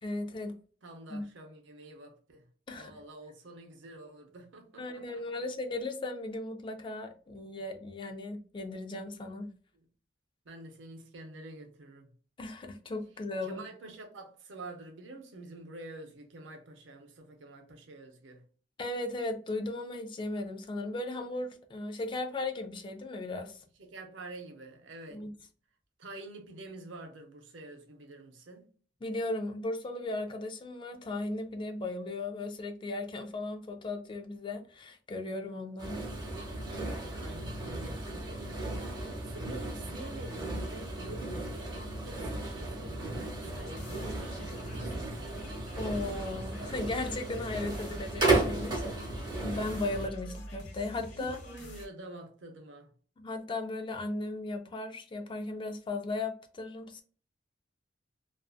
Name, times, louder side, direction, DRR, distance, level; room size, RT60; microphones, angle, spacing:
voice 1, 0.0-0.6 1.1-1.2 2.7-2.9 4.8-9.5 12.4-13.6 18.8-23.6 25.1-25.3 29.0-36.0 45.8-49.1 49.4-51.4 53.2-57.0, left 2 dB, 25° left, 0.3 m, -36 dB
voice 2, 0.8-2.5 2.7-5.3 9.7-9.9 10.4-12.1 13.4-18.4 23.8-25.2 26.0-28.7 37.2-45.5 50.2-50.3 51.2-52.9, right 2 dB, 80° right, 0.6 m, -48 dB
sound 1, 35.8-50.1, right 2 dB, 25° right, 0.9 m, -35 dB
sound 2, 43.4-51.9, equal, 85° left, 1.0 m, -47 dB
2.5 x 2.4 x 2.3 m
head